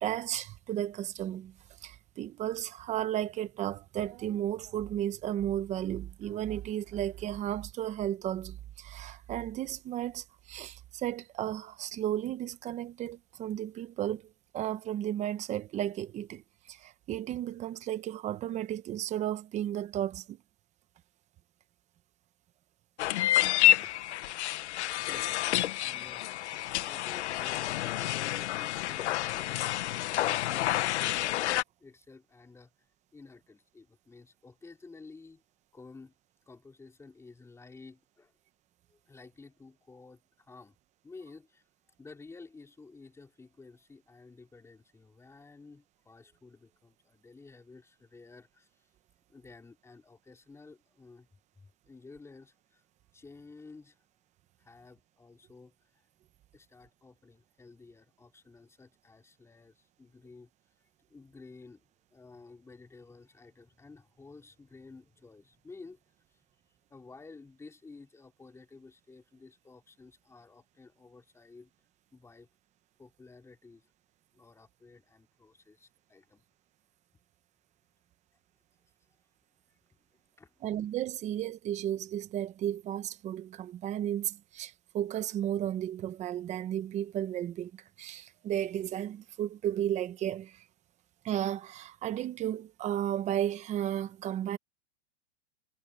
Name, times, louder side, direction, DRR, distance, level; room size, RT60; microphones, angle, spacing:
voice 1, 0.0-1.5 1.8-20.4 80.6-87.7 88.0-90.6 91.2-94.6, right 11 dB, 20° right, 0.9 m, -34 dB
sound 1, 3.9-5.1 5.5-8.0 8.4-8.5 8.7-13.2 13.5-17.6, right 19 dB, 55° right, 7.1 m, -64 dB
sound 2, 23.0-31.6, left 14 dB, 70° left, 1.1 m, -29 dB
voice 2, 23.8-24.6 25.1-26.3 26.8-31.5 31.8-35.4 35.7-36.1 36.5-38.3 38.9-40.8 41.0-41.6 42.0-48.9 49.3-51.3 51.6-52.8 53.1-54.0 54.6-56.1 56.5-60.5 60.8-66.5 66.9-71.7 72.1-72.5 73.0-73.9 74.3-76.4 79.7-79.8 80.4-80.6, left 3 dB, 5° left, 3.3 m, -53 dB
supercardioid pair, 150°, 36 cm